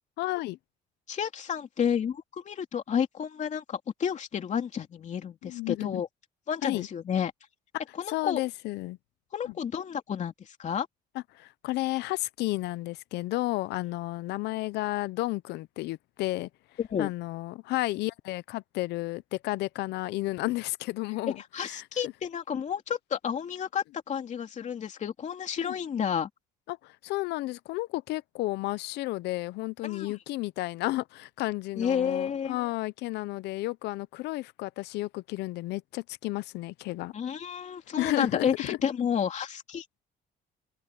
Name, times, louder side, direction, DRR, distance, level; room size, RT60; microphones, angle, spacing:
voice 1, 0.2-0.6 5.4-6.0 6.6-6.9 8.1-9.0 9.4-9.5 11.3-16.5 17.0-22.1 25.6-25.8 26.7-37.1 38.0-38.8, left 18 dB, 80° left, 0.7 m, -32 dB
voice 2, 1.1-6.1 6.5-7.3 8.0-8.4 9.3-10.9 16.8-17.1 21.4-26.3 29.8-30.1 31.8-32.6 37.1-40.0, left 8 dB, 45° left, 2.8 m, -31 dB
cardioid pair, 110°, 17 cm